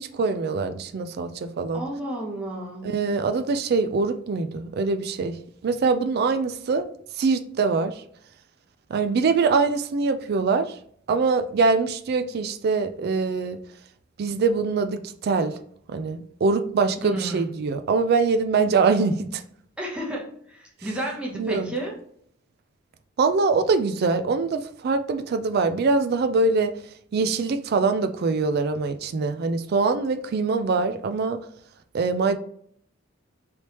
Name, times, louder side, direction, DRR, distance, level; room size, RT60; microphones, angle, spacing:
voice 1, 0.0-1.8 2.8-5.4 5.6-6.9 7.2-7.9 8.9-10.7 11.1-13.6 14.2-15.5 15.9-19.4 21.4-21.7 23.2-26.7 27.1-31.4 31.9-32.4, right 4 dB, 50° right, 9 dB, 0.3 m, -23 dB
voice 2, 1.7-2.9 17.0-17.5 19.8-22.0, right 1 dB, 5° right, -3 dB, 0.8 m, -32 dB
3.2 x 3.0 x 2.9 m, 0.65 s
head